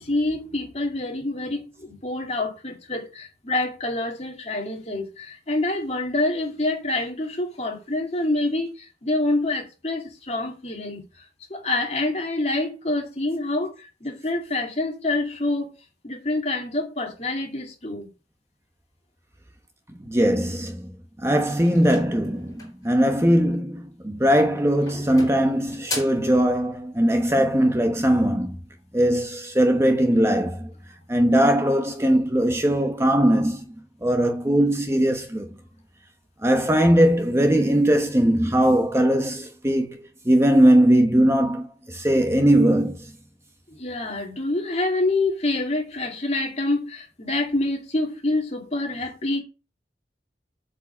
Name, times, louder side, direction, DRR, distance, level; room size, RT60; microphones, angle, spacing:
voice 1, 0.0-11.0 11.5-15.7 16.0-18.1 24.9-25.4 43.7-49.4, left 2 dB, 35° left, 2.5 m, -27 dB
voice 2, 20.1-20.9 21.2-28.6 28.9-30.7 31.1-33.6 34.0-35.5 36.4-42.9, right 1 dB, 15° right, 1.0 m, -20 dB
sound 1, 21.6-22.9 24.1-24.5 24.9-26.3, left 2 dB, 20° left, 4.4 m, -36 dB
8.3 x 5.1 x 7.2 m
head